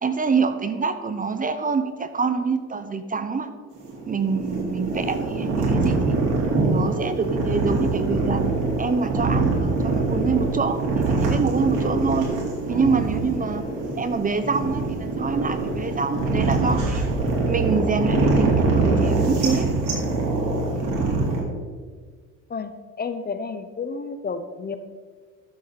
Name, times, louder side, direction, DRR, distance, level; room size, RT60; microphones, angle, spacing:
voice 1, 0.0-3.5 4.1-6.2 6.6-8.4 8.8-12.3 12.7-13.6 14.0-17.1 17.5-19.7 20.0-20.2, right 4 dB, 25° right, 10 dB, 0.9 m, -26 dB
sound 1, 3.7-21.4, right 3 dB, 65° right, 3.7 m, -23 dB
voice 2, 23.0-24.8, left 4 dB, 30° left, 10 dB, 0.9 m, -31 dB
13.0 x 7.5 x 4.1 m, 1.5 s
supercardioid pair, 85°, 33 cm